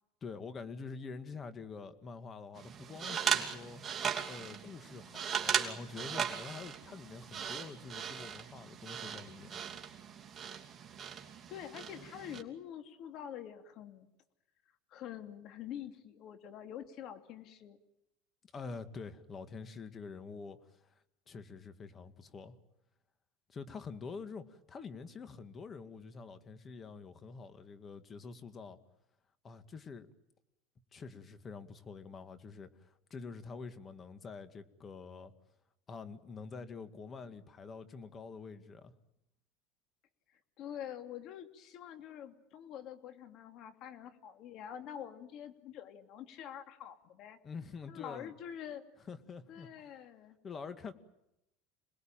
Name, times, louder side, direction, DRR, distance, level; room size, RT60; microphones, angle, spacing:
voice 1, 0.2-3.8 4.3-9.6 18.5-20.9 21.3-22.5 23.5-28.8 29.4-30.1 30.9-35.3 35.9-38.9 47.4-48.3 49.1-49.7 50.4-50.9, left 5 dB, 30° left, 10 dB, 2.1 m, -46 dB
sound 1, 2.5-12.4, right 7 dB, 30° right, 2.9 m, -38 dB
voice 2, 11.5-14.1 14.9-17.8 40.6-47.4 47.9-48.9 49.5-50.4, left 9 dB, 50° left, 7 dB, 2.8 m, -46 dB
27.5 x 20.5 x 9.1 m, 0.86 s
supercardioid pair, 115°, 0 cm